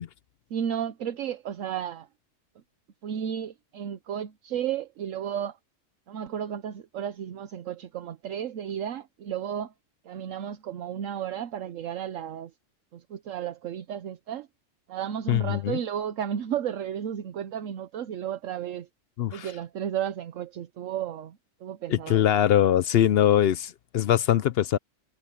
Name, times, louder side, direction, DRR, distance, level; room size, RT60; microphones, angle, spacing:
voice 1, 0.5-2.1 3.0-5.6 6.1-9.7 10.0-12.5 12.9-14.5 14.9-18.9 19.3-22.3, right 9 dB, 70° right, 1.1 m, -33 dB
voice 2, 15.3-15.8 19.2-19.5 21.9-24.8, left 11 dB, 65° left, 0.6 m, -22 dB
omnidirectional pair, 1.4 m